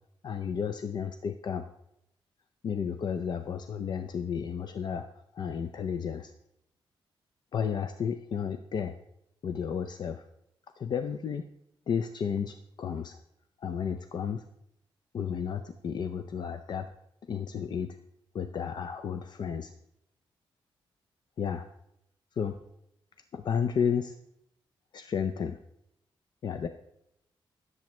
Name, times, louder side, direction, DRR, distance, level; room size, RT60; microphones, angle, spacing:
voice 1, 0.2-1.7 2.6-5.1 5.3-6.3 7.5-9.0 9.4-10.3 10.8-11.5 11.9-13.2 13.6-14.4 15.1-16.9 17.3-18.0 18.3-19.7 21.4-21.7 22.4-22.6 23.3-24.1 24.9-25.6 26.4-26.7, left 7 dB, 50° left, 8 dB, 0.5 m, -32 dB
16.5 x 7.7 x 3.1 m, 0.79 s
wide cardioid pair, 165°, 9 cm